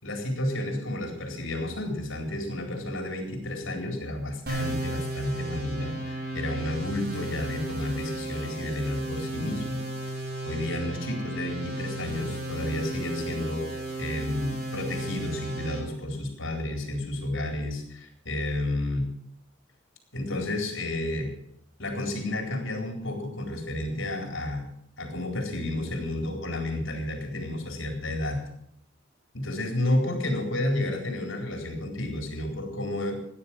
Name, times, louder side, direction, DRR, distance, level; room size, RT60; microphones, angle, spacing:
voice 1, 0.0-9.8 10.4-19.1 20.1-21.3 21.8-24.6 25.0-28.4 29.3-33.2, left 1 dB, 70° left, 3 dB, 4.2 m, -31 dB
sound 1, 4.5-15.8, right 1 dB, 50° right, 6.8 m, -34 dB
16.5 x 10.5 x 7.5 m, 0.71 s
head